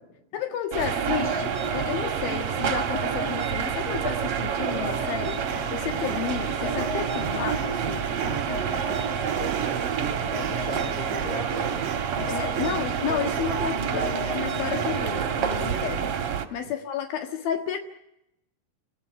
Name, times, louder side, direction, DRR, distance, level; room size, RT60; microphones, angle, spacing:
voice 1, 0.3-8.9 12.3-15.0 15.4-17.8, left 8 dB, 85° left, 5 dB, 3.4 m, -32 dB
sound 1, 0.7-16.5, right 8 dB, 50° right, 2.0 m, -28 dB
sound 2, 1.1-15.9, left 2 dB, 15° left, 5.2 m, -38 dB
sound 3, 5.5-15.0, right 9 dB, 85° right, 1.2 m, -38 dB
voice 2, 10.1-11.8 13.5-14.1 14.8-15.2 16.6-16.7, left 2 dB, 30° left, 6 dB, 4.9 m, -37 dB
29.5 x 15.5 x 9.0 m, 0.82 s
omnidirectional pair, 4.1 m